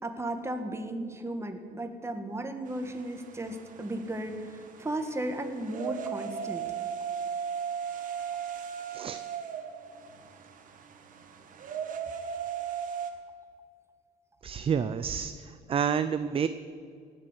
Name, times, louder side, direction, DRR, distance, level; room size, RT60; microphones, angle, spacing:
voice 1, 0.0-6.7, right 1 dB, 15° right, 7 dB, 1.6 m, -35 dB
sound 1, 2.7-13.1, right 7 dB, 50° right, 1.7 m, -37 dB
voice 2, 14.4-16.5, right 7 dB, 35° right, 12 dB, 0.5 m, -29 dB
17.5 x 7.8 x 8.2 m, 2.2 s
cardioid pair, 110°, 17 cm